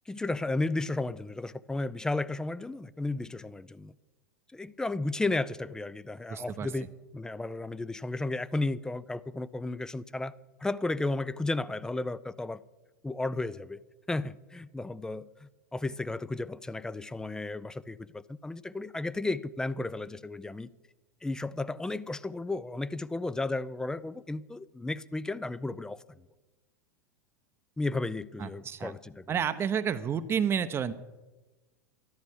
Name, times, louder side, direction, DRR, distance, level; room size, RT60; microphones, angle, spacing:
voice 1, 0.1-3.9 4.5-6.9 7.1-10.3 10.6-12.6 13.0-13.8 14.1-20.7 21.2-26.0 27.8-29.2, left 2 dB, 5° left, 17 dB, 0.5 m, -33 dB
voice 2, 6.3-6.7 28.4-28.9 29.3-30.9, right 7 dB, 25° right, 12 dB, 0.8 m, -30 dB
13.0 x 11.0 x 6.4 m, 1.1 s
figure-of-eight pair, 85°, 9 cm